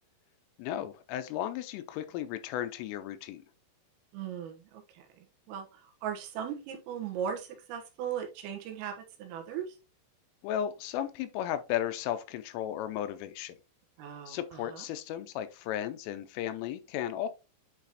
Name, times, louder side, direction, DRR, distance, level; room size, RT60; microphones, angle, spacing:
voice 1, 0.6-3.4 10.4-13.6 14.3-17.3, left 11 dB, 85° left, 3.2 m, -35 dB
voice 2, 4.1-4.8 5.5-5.7 6.0-8.9 9.2-9.7 14.0-14.4 14.7-14.9, right 8 dB, 90° right, 3.9 m, -37 dB
9.9 x 4.1 x 2.9 m
omnidirectional pair, 5.8 m